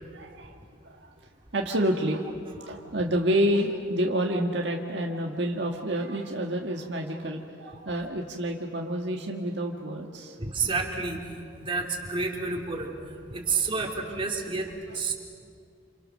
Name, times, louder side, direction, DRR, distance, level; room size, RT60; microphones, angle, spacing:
voice 1, 0.1-0.5 0.8-1.1 1.5-2.2 2.5-10.4 13.5-13.6, right 1 dB, 70° right, 1 dB, 1.7 m, -28 dB
voice 2, 10.4-11.2 11.6-12.9 13.3-15.1, right 4 dB, 30° right, 0 dB, 3.3 m, -29 dB
28.5 x 28.0 x 6.6 m, 2.2 s
head